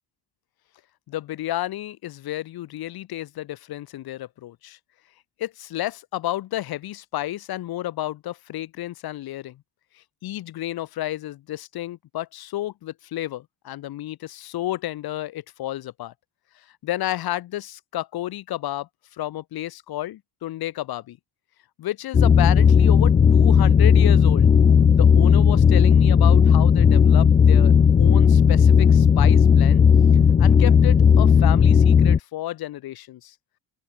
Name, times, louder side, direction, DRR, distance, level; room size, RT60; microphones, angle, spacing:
voice 1, 1.1-4.8 5.4-9.6 9.9-16.1 16.6-18.9 19.2-21.2 21.8-24.5 25.0-27.7 28.0-29.8 30.4-33.3, left 14 dB, 75° left, 3.9 m, -31 dB
sound 1, 22.1-32.2, left 7 dB, 20° left, 0.3 m, -15 dB
open air
cardioid pair, 125°, 37 cm